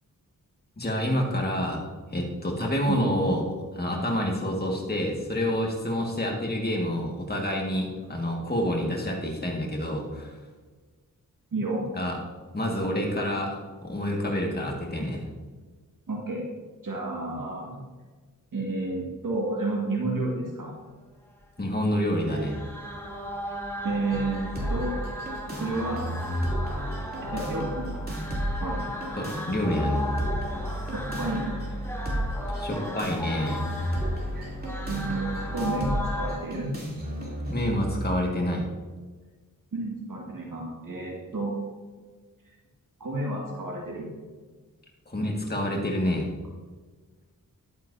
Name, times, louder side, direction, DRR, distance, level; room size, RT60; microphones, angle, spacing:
voice 1, 0.8-1.8 2.1-3.4 3.7-10.4 11.9-12.2 12.5-15.2 21.6-22.6 29.2-30.0 32.5-33.6 37.5-38.6 45.1-46.3, left 1 dB, 30° left, 0 dB, 1.9 m, -28 dB
voice 2, 11.5-11.8 16.1-16.4 16.8-17.8 18.5-20.7 23.8-24.4 24.7-24.9 25.6-26.1 27.2-28.0 28.6-28.9 30.9-31.5 34.3-36.7 39.7-41.5 43.0-44.1, right 2 dB, 70° right, -3 dB, 2.1 m, -31 dB
sound 1, 22.1-36.4, equal, 5° left, 2.0 m, -36 dB
sound 2, 24.1-38.1, equal, 25° right, 3.3 m, -32 dB
11.0 x 9.4 x 2.8 m, 1.4 s
cardioid pair, 55°, 34 cm